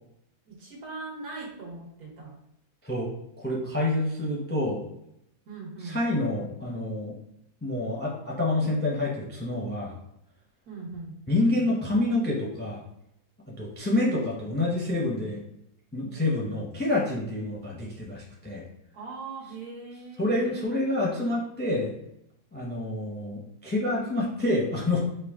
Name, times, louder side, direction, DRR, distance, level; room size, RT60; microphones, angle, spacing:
voice 1, 0.5-2.4 5.5-6.0 10.7-11.2 18.9-20.7, right 3 dB, 75° right, -3 dB, 1.8 m, -40 dB
voice 2, 3.4-4.8 5.8-7.1 7.6-10.0 11.3-12.8 13.5-15.4 15.9-18.7 20.2-21.9 22.5-25.0, left 2 dB, 10° left, -3 dB, 0.6 m, -27 dB
5.2 x 2.3 x 3.5 m, 0.79 s
omnidirectional pair, 1.6 m